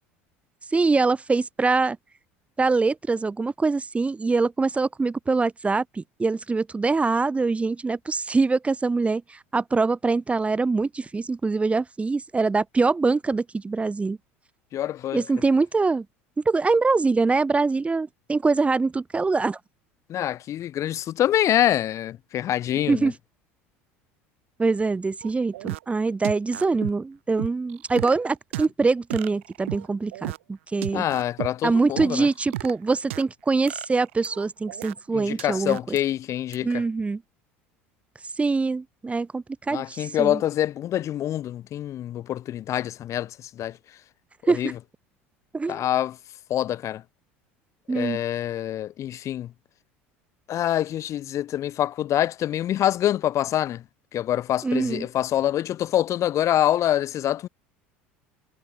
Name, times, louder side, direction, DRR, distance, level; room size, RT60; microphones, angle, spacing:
voice 1, 0.7-2.0 2.6-14.2 15.1-16.0 16.5-19.6 22.9-23.1 24.6-31.1 31.6-36.0 36.6-37.2 38.4-40.4 44.5-44.7 45.5-45.8 47.9-48.2 54.6-55.1, right 3 dB, 20° right, 2.3 m, -24 dB
voice 2, 14.7-15.2 20.1-23.1 30.9-32.3 35.1-36.7 39.7-43.3 43.6-43.7 44.4-44.7 45.7-46.2 46.5-47.0 47.9-49.5 50.5-53.8 54.1-57.5, left 12 dB, 50° left, 5.3 m, -25 dB
sound 1, 25.2-25.8 26.2-26.9 27.4-28.2 28.5-28.7 29.1-29.9 30.1-30.4 30.8-31.5 32.0-33.2 33.7-34.9 35.4-36.0 36.5-36.6, right 17 dB, 80° right, 7.1 m, -33 dB
hypercardioid pair, 80°, 7 cm